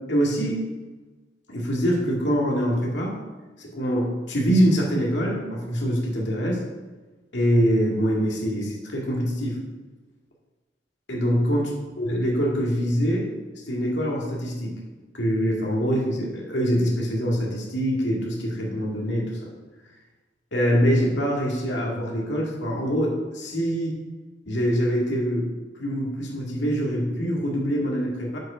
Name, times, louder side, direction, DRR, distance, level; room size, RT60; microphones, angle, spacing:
voice 1, 0.1-0.6 1.5-3.2 3.6-6.6 7.3-9.6 11.1-11.7 12.0-13.3 13.7-14.8 15.1-19.3 20.5-24.0 24.5-25.5 25.8-28.4, equal, 75° left, -3 dB, 2.1 m, -24 dB
7.7 x 5.3 x 5.0 m, 1.2 s
head